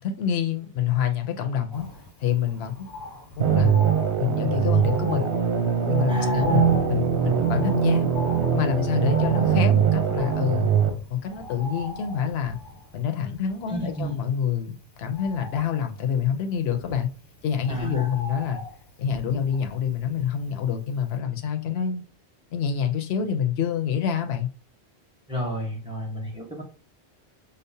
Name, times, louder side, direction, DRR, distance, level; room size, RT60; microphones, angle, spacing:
voice 1, 0.0-1.9 2.2-2.9 3.4-3.9 4.2-5.3 5.9-8.1 8.5-10.7 11.1-12.6 12.9-17.1 17.4-18.6 19.0-22.0 22.5-24.5, left 8 dB, 70° left, 0.9 m, -27 dB
Bird, 1.7-20.8 21.1-21.2, left 2 dB, 25° left, 0.6 m, -39 dB
sound 1, 3.4-10.9, right 8 dB, 85° right, 1.0 m, -22 dB
voice 2, 6.1-6.6 13.7-14.1 17.7-18.1 25.3-26.6, left 1 dB, 5° right, 0.9 m, -29 dB
5.1 x 2.0 x 2.7 m
omnidirectional pair, 1.1 m